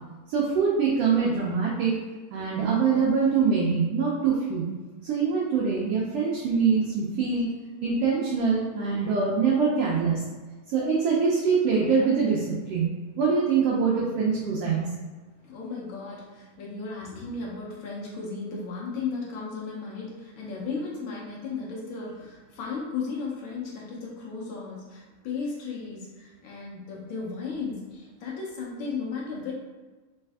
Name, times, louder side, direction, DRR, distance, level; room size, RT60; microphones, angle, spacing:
voice 1, 0.3-2.0 2.3-4.7 5.0-7.6 7.8-10.2 10.7-12.9 13.2-14.9, right 5 dB, 70° right, -5 dB, 1.6 m, -24 dB
voice 2, 15.4-29.5, left 4 dB, 70° left, -4 dB, 1.2 m, -35 dB
4.4 x 3.2 x 3.5 m, 1.3 s
omnidirectional pair, 3.3 m